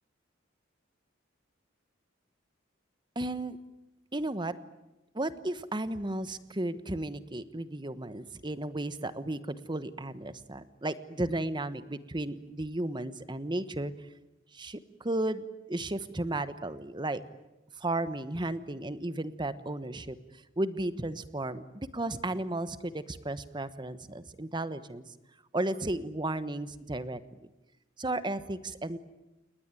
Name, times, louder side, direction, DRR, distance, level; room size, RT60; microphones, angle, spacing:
voice 1, 3.1-3.6 4.1-4.6 5.1-13.9 14.5-17.2 17.8-20.2 20.6-25.0 25.5-27.4 28.0-29.0, right 2 dB, 25° right, 13 dB, 1.3 m, -34 dB
29.5 x 20.0 x 9.2 m, 0.97 s
head